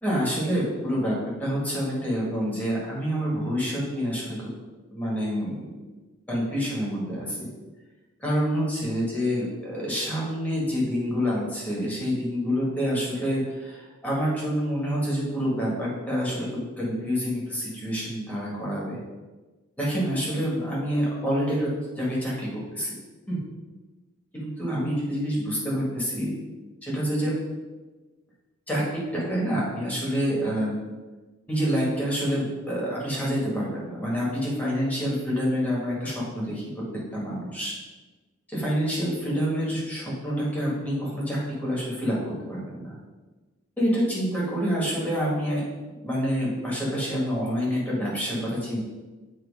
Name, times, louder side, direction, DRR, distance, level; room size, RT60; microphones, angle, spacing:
voice 1, 0.0-4.5 4.9-5.7 6.3-7.5 8.2-19.0 19.8-22.9 23.3-23.4 24.3-26.3 26.8-27.3 28.7-30.8 31.5-36.6 37.1-37.7 38.5-43.0 43.8-48.8, equal, 5° left, -6 dB, 1.9 m, -27 dB
7.9 x 3.2 x 4.8 m, 1.3 s
head